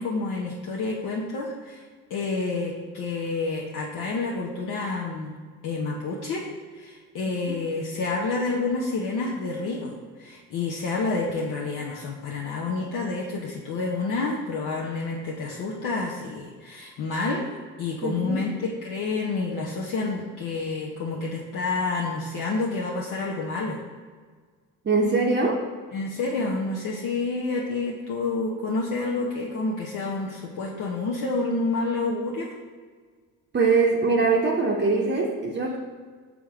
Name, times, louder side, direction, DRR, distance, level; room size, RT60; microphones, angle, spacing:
voice 1, 0.0-1.8 2.1-5.3 5.6-6.4 6.7-17.4 17.8-23.8 25.9-32.5, left 3 dB, 65° left, -3 dB, 0.9 m, -29 dB
voice 2, 18.0-18.4 24.8-25.6 33.5-35.8, right 4 dB, 30° right, -2 dB, 0.8 m, -22 dB
6.1 x 3.5 x 4.8 m, 1.5 s
supercardioid pair, 70°, 34 cm